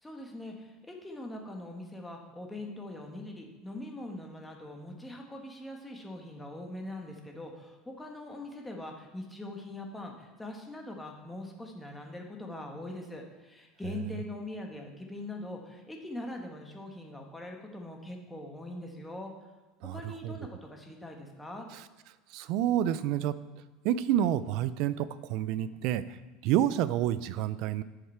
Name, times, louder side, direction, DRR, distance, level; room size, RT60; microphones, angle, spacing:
voice 1, 0.0-19.3 19.9-21.7, left 1 dB, 5° left, 1 dB, 1.3 m, -42 dB
voice 2, 19.8-20.3 22.3-23.3 23.8-26.2 26.4-27.8, right 11 dB, 60° right, 16 dB, 0.4 m, -29 dB
9.9 x 6.6 x 4.4 m, 1.2 s
supercardioid pair, 145°, 0 cm